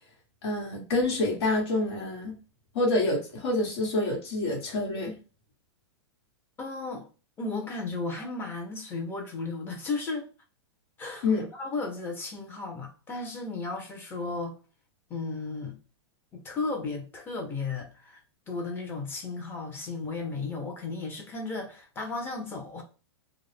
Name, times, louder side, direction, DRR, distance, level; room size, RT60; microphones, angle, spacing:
voice 1, 0.4-2.3 2.7-5.1 11.2-11.5, left 2 dB, 65° left, 1.3 m, -27 dB
voice 2, 6.6-7.1 7.4-10.2 11.0-14.6 15.1-15.8 16.3-18.2 18.5-22.8, left 3 dB, 15° left, 0.6 m, -34 dB
2.4 x 2.0 x 3.2 m
hypercardioid pair, 150°, 14 cm